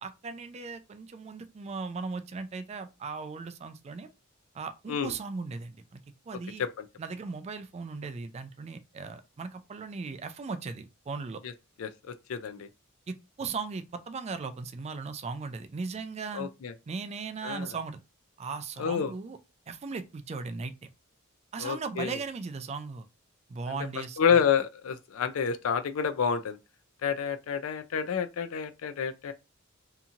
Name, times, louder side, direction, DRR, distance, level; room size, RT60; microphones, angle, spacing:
voice 1, 0.0-4.1 4.5-6.0 6.3-6.6 7.0-11.4 13.1-16.5 16.9-18.0 18.4-19.4 19.7-20.7 21.5-23.1 23.5-24.2, right 4 dB, 30° right, 0.3 m, -37 dB
voice 2, 11.8-12.7 16.3-16.7 17.4-17.7 18.8-19.1 21.6-22.2 23.7-23.8 24.2-26.6 27.0-29.3, left 7 dB, 75° left, 0.4 m, -29 dB
2.8 x 2.6 x 2.4 m
head